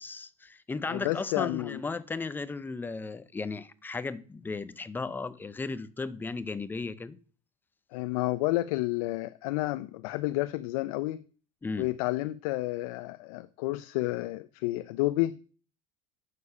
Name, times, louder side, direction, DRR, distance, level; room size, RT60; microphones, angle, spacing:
voice 1, 0.0-7.2 11.6-11.9, left 4 dB, 10° left, 0.5 m, -35 dB
voice 2, 0.9-1.8 7.9-11.2 11.8-15.4, left 18 dB, 80° left, 0.5 m, -30 dB
8.2 x 6.7 x 5.5 m
supercardioid pair, 140°, 18 cm